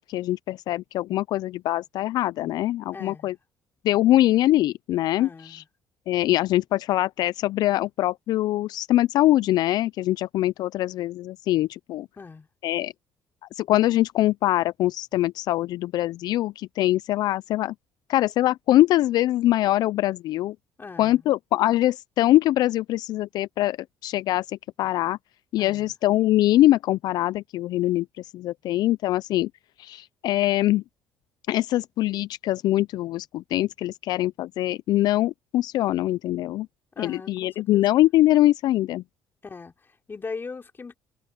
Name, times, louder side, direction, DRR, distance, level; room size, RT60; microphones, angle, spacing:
voice 1, 0.0-3.3 3.8-5.6 6.1-12.1 12.6-12.9 13.5-17.7 18.1-20.6 21.0-23.8 24.0-25.2 25.5-29.5 29.8-30.8 31.5-36.7 37.0-39.0, left 15 dB, 70° left, 0.3 m, -23 dB
voice 2, 2.9-3.3 5.2-5.7 12.2-12.5 20.8-21.3 25.6-25.9 36.9-37.8 39.4-41.0, left 4 dB, 30° left, 4.2 m, -40 dB
cardioid pair, 85°, 7 cm